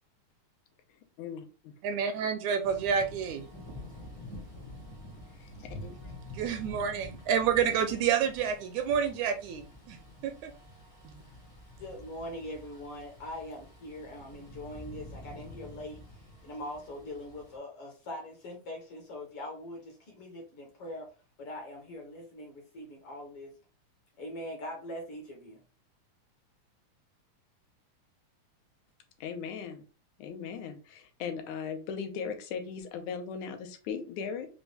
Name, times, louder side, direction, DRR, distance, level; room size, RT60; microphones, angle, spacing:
voice 1, 1.8-3.5 6.3-10.0 10.2-10.5 11.0-11.2, right 7 dB, 80° right, 7 dB, 1.8 m, -29 dB
Thunder / Rain, 2.6-17.6, left 1 dB, 40° left, 0.4 m, -48 dB
voice 2, 5.4-6.0 29.2-29.8 30.2-34.5, left 6 dB, 80° left, 6 dB, 2.0 m, -38 dB
voice 3, 11.8-21.1 21.4-23.5 24.2-25.6, left 1 dB, 65° left, 0 dB, 1.6 m, -42 dB
5.1 x 2.3 x 3.2 m, 0.34 s
omnidirectional pair, 3.4 m